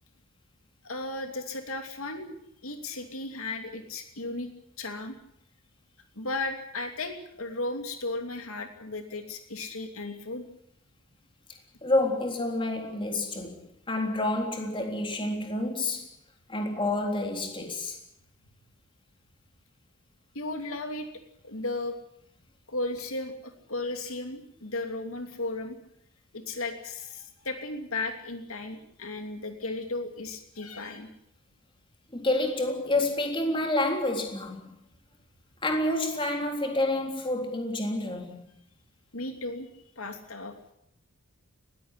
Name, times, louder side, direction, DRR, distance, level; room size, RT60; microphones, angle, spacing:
voice 1, 0.8-2.4 2.6-4.5 4.8-5.2 6.1-10.4 20.3-21.1 21.4-22.0 22.7-25.8 26.3-31.1 39.1-39.7 40.0-40.5, left 2 dB, 70° left, 2.8 m, -35 dB
voice 2, 11.8-16.1 16.5-18.0 32.1-34.7 35.6-38.4, left 2 dB, 25° left, 3.7 m, -28 dB
20.0 x 16.0 x 10.0 m
head